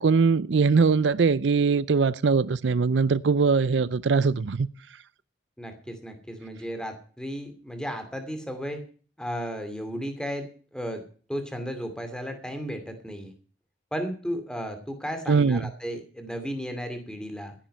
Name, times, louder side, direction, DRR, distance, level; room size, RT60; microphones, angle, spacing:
voice 1, 0.0-4.7 15.3-15.6, right 5 dB, 75° right, 0.5 m, -21 dB
voice 2, 5.6-8.8 9.2-11.0 11.3-13.3 13.9-17.5, equal, 5° left, 2.6 m, -34 dB
14.0 x 10.5 x 5.6 m
head